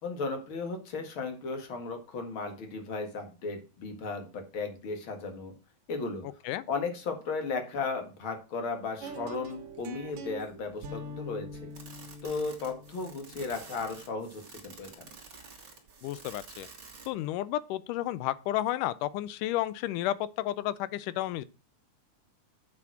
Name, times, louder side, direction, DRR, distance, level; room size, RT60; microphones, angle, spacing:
voice 1, 0.0-5.5 5.9-6.3 6.7-11.7 12.2-15.1, left 4 dB, 45° left, 2.3 m, -35 dB
sound 1, 9.0-15.0, equal, 70° right, 2.6 m, -45 dB
sound 2, 11.7-17.2, right 4 dB, 35° right, 2.3 m, -50 dB
voice 2, 16.0-16.7 17.1-21.4, left 14 dB, 85° left, 2.2 m, -32 dB
7.9 x 6.1 x 6.0 m
omnidirectional pair, 3.6 m